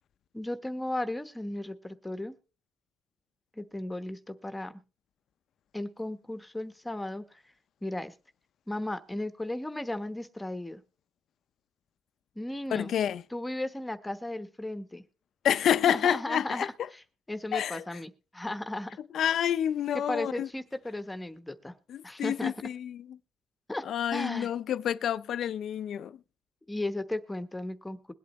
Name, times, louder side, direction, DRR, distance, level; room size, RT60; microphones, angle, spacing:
voice 1, 0.3-2.3 3.6-4.7 5.7-7.4 7.8-8.1 8.7-10.8 12.4-12.9 13.3-15.0 15.9-18.9 20.1-21.7 22.0-22.5 23.7-23.8 24.1-24.5 26.7-28.1, left 1 dB, 10° left, 1.1 m, -35 dB
voice 2, 12.7-13.2 15.4-16.7 17.5-17.8 19.1-20.5 21.9-23.0 23.9-26.2, left 9 dB, 65° left, 0.5 m, -28 dB
21.5 x 8.4 x 3.1 m
cardioid pair, 90°, 0 cm